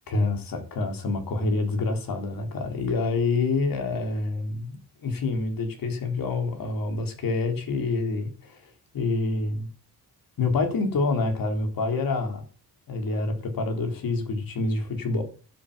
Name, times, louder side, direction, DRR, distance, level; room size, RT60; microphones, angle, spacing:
voice 1, 0.1-9.7 10.4-12.4 12.9-15.2, left 3 dB, 55° left, 3.7 m, -27 dB
11.0 x 7.7 x 7.4 m
wide cardioid pair, 175°, 41 cm